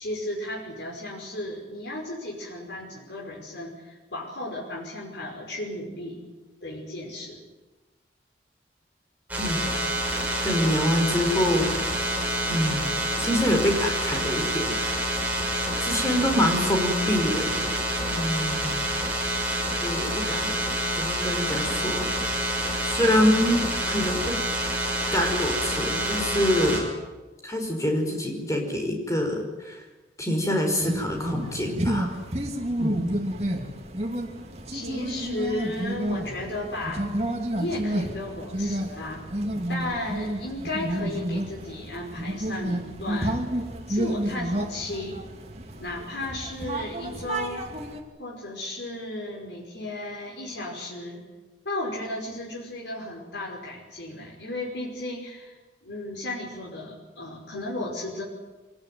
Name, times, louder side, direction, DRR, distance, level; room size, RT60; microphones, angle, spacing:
voice 1, 0.0-6.2 6.6-7.4 34.7-37.1 37.5-39.3 39.7-43.4 43.9-45.2 45.8-47.7 48.2-51.2 51.6-55.6 55.8-58.2, left 1 dB, 85° left, -2 dB, 5.4 m, -34 dB
sound 1, 9.3-26.8, right 1 dB, 10° right, 5.8 m, -27 dB
voice 2, 10.4-12.0 12.5-12.9 13.2-14.9 15.8-17.7 18.1-18.9 19.8-20.5 21.0-22.1 22.8-24.4 25.1-26.9 27.4-29.8 30.2-32.1 32.8-33.1, left 1 dB, 20° left, 2 dB, 5.0 m, -26 dB
sound 2, 30.8-48.0, right 1 dB, 35° right, 2.7 m, -30 dB
24.5 x 18.5 x 9.5 m, 1.2 s
head